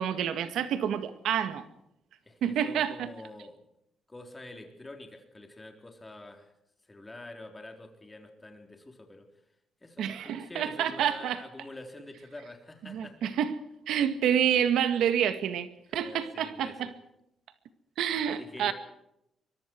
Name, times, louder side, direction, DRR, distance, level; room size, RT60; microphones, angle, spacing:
voice 1, 0.0-1.7 2.4-2.9 10.0-11.4 12.9-13.5 13.9-16.9 18.0-18.7, right 9 dB, 90° right, 10 dB, 1.9 m, -28 dB
voice 2, 2.2-3.6 4.1-6.5 6.8-9.3 9.8-13.3 13.9-14.0 15.9-16.9 18.4-18.7, left 2 dB, 15° left, 4 dB, 3.9 m, -46 dB
24.5 x 23.0 x 4.7 m, 0.83 s
cardioid pair, 150°, 0 cm